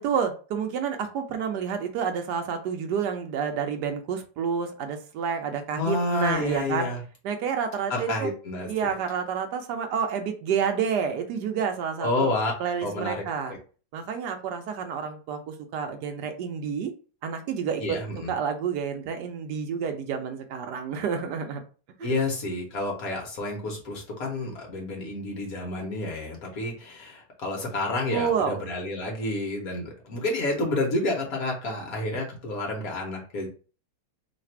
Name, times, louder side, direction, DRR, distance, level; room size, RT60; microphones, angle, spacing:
voice 1, 0.0-6.9 7.2-8.3 8.7-12.3 12.6-13.5 13.9-16.9 17.2-18.0 18.3-21.6 22.0-22.1 28.1-28.6, right 7 dB, 70° right, 1.0 m, -29 dB
voice 2, 5.8-7.0 7.9-9.0 12.0-12.5 12.8-13.6 17.8-18.3 22.0-33.5, left 2 dB, 55° left, 1.1 m, -29 dB
3.3 x 2.5 x 4.3 m
omnidirectional pair, 2.3 m